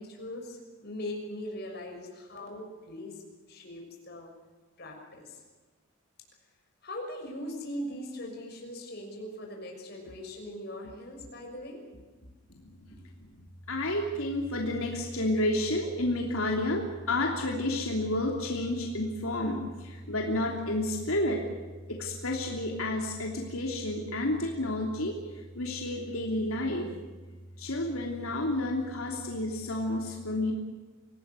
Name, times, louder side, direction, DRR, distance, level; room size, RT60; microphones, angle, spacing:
voice 1, 0.0-3.1 3.5-4.3 4.8-5.4 6.8-11.8, left 1 dB, 50° left, 1 dB, 6.2 m, -40 dB
voice 2, 13.7-21.4 21.9-26.9 27.6-30.5, left 1 dB, 85° left, 1 dB, 3.1 m, -30 dB
26.0 x 18.0 x 8.3 m, 1.3 s
head